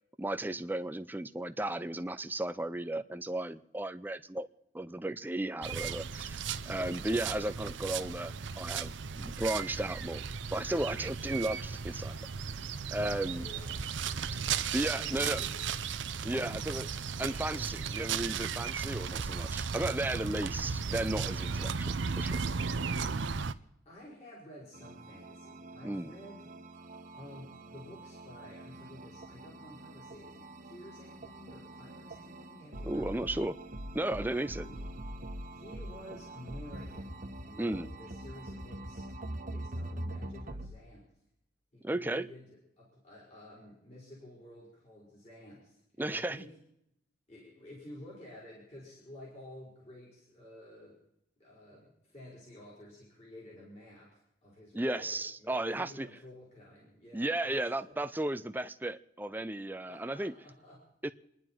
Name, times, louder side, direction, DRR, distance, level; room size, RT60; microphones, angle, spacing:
voice 1, 0.2-4.5 4.7-10.2 10.5-12.1 12.9-13.5 14.7-15.4 16.2-16.9 17.2-22.4 25.8-26.1 32.8-33.6 33.9-34.7 37.6-37.9 41.8-42.3 46.0-46.4 54.7-56.1 57.1-60.3 61.0-61.1, right 1 dB, 10° right, 0.5 m, -34 dB
sound 1, 5.6-23.5, right 6 dB, 75° right, 0.7 m, -35 dB
voice 2, 13.4-14.0 14.9-15.6 23.9-26.5 27.1-33.4 34.6-34.8 35.5-39.2 39.5-41.1 41.7-46.6 47.3-51.0 51.4-58.1 59.8-60.9, left 1 dB, 35° left, 5.1 m, -51 dB
sound 2, 24.7-40.7, right 1 dB, 45° right, 1.2 m, -44 dB
29.0 x 11.0 x 4.5 m
head